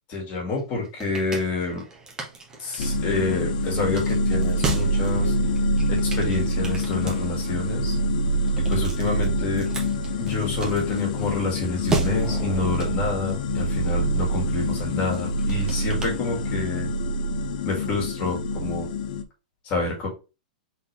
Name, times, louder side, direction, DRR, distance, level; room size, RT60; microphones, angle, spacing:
voice 1, 0.1-1.8 2.6-5.3 5.9-8.0 8.7-9.7 10.2-16.9 17.6-18.9 19.6-20.1, left 3 dB, 40° left, -2 dB, 2.4 m, -28 dB
sound 1, 0.6-16.8, right 3 dB, 15° right, 1.4 m, -36 dB
sound 2, 2.8-19.2, equal, 70° left, 0.7 m, -25 dB
4.1 x 3.8 x 3.4 m, 0.29 s
hypercardioid pair, 130°, 4 cm